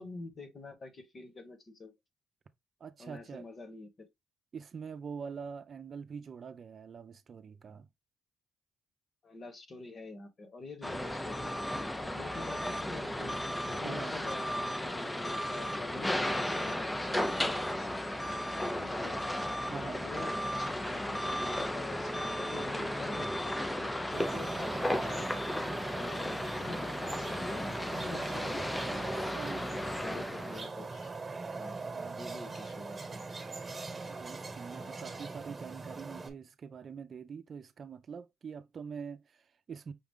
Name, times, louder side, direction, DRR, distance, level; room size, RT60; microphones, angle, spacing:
voice 1, 0.0-1.9 3.0-4.1 9.2-11.5 12.0-13.3 13.6-19.2 19.8-25.3 25.9-29.3 30.0-31.2 31.6-31.8 32.2-33.2, left 2 dB, 40° left, 1.4 m, -46 dB
voice 2, 2.8-3.5 4.5-7.9 13.8-14.2 19.7-20.1 29.3-30.6 31.9-32.3 34.1-39.9, right 6 dB, 50° right, 0.6 m, -45 dB
sound 1, 10.8-30.7, left 1 dB, 10° left, 0.5 m, -35 dB
sound 2, 24.1-36.3, right 3 dB, 25° right, 1.2 m, -41 dB
5.9 x 2.4 x 3.6 m
cardioid pair, 90°, 0 cm